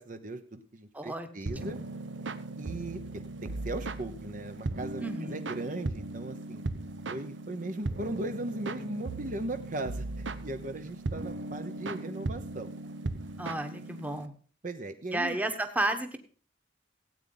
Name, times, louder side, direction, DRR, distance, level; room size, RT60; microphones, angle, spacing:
voice 1, 0.0-1.8 2.6-6.6 7.1-12.7 14.6-15.4, right 1 dB, 45° right, 8 dB, 0.9 m, -38 dB
voice 2, 0.9-1.3 1.6-1.8 5.0-5.4 13.4-14.3 15.1-16.2, right 1 dB, 10° right, 6 dB, 1.1 m, -32 dB
sound 1, 1.5-14.3, right 2 dB, 90° right, 0.9 m, -38 dB
16.5 x 8.9 x 3.9 m, 0.43 s
head